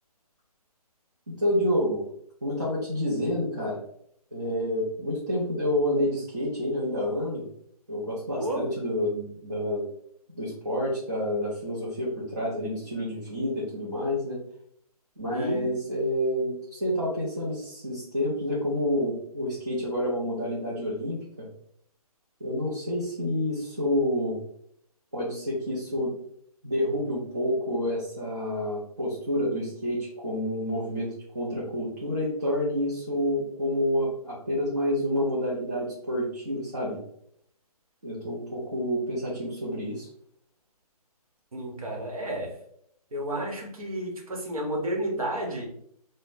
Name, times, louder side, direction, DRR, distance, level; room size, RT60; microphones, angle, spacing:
voice 1, 1.3-2.1 2.4-3.8 4.3-7.4 7.9-9.9 10.3-14.4 15.2-21.5 22.4-24.4 25.1-26.1 26.6-37.0 38.0-40.1, equal, 30° right, -8 dB, 0.5 m, -28 dB
voice 2, 8.3-8.7 15.3-15.7 41.5-42.6 43.1-45.7, right 1 dB, 65° right, 1 dB, 0.9 m, -31 dB
3.4 x 2.0 x 2.5 m, 0.68 s
hypercardioid pair, 175°, 20 cm